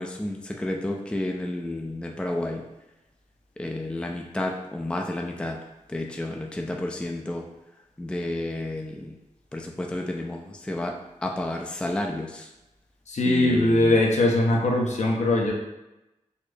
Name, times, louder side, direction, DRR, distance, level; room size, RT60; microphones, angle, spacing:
voice 1, 0.0-2.6 3.6-5.6 5.9-7.4 8.0-9.2 9.5-11.0 11.2-12.5 13.2-14.0, left 1 dB, 10° left, 2 dB, 0.4 m, -31 dB
voice 2, 13.1-15.5, left 1 dB, 60° left, -1 dB, 0.7 m, -21 dB
4.1 x 2.0 x 3.2 m, 0.95 s
cardioid pair, 50°, 13 cm